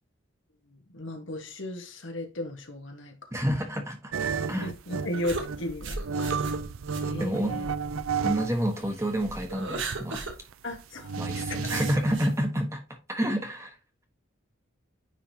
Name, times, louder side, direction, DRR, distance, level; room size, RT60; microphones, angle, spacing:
voice 1, 0.7-3.3 4.6-6.4 7.0-7.7 10.6-11.7, left 1 dB, 65° left, 1.5 m, -36 dB
voice 2, 3.3-4.7 7.2-7.6 8.2-10.3 11.2-12.8 13.1-13.7, equal, 15° right, 1.3 m, -29 dB
sound 1, 4.1-8.5 8.8-12.2, right 5 dB, 80° right, 0.5 m, -32 dB
sound 2, 5.2-8.6 9.0-10.4 10.7-10.8 11.6-12.3, right 3 dB, 65° right, 1.3 m, -36 dB
9.8 x 3.6 x 2.8 m
head